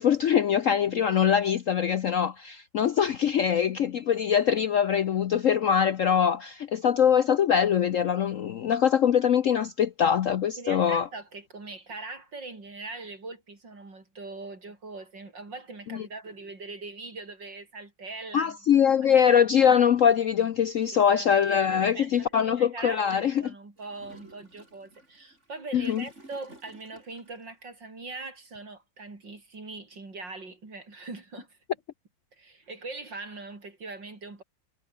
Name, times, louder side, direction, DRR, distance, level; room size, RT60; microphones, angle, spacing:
voice 1, 0.0-11.1 15.9-16.0 18.3-23.3 25.7-26.0, left 8 dB, 60° left, 0.8 m, -23 dB
voice 2, 10.6-18.6 20.9-21.3 21.7-31.6 32.4-34.4, right 3 dB, 70° right, 5.8 m, -41 dB
Gurgling / Toilet flush, 23.8-27.5, right 2 dB, 35° right, 6.7 m, -54 dB
omnidirectional pair, 2.0 m